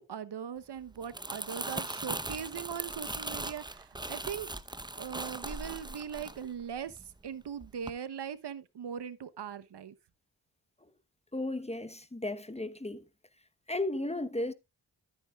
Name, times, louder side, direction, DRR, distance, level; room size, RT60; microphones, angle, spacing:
voice 1, 0.0-4.5 5.0-9.9, right 8 dB, 60° right, 1.0 m, -40 dB
Crumpling crinkling, 0.9-7.3 7.6-7.9, right 2 dB, 10° right, 0.8 m, -39 dB
voice 2, 11.3-13.0 13.7-14.5, left 2 dB, 15° left, 1.0 m, -34 dB
13.0 x 8.9 x 2.3 m
cardioid pair, 50°, 46 cm